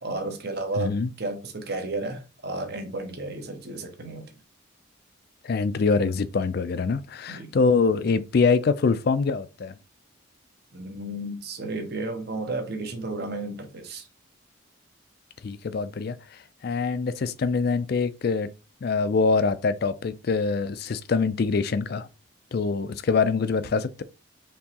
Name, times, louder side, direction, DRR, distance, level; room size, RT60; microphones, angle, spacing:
voice 1, 0.0-4.3 7.3-7.5 10.7-14.1, right 2 dB, 50° right, 0.9 m, -33 dB
voice 2, 0.8-1.1 5.4-9.7 15.4-16.2 16.6-18.5 18.8-22.1 22.5-24.0, left 4 dB, 50° left, 0.3 m, -24 dB
4.4 x 3.1 x 2.8 m
head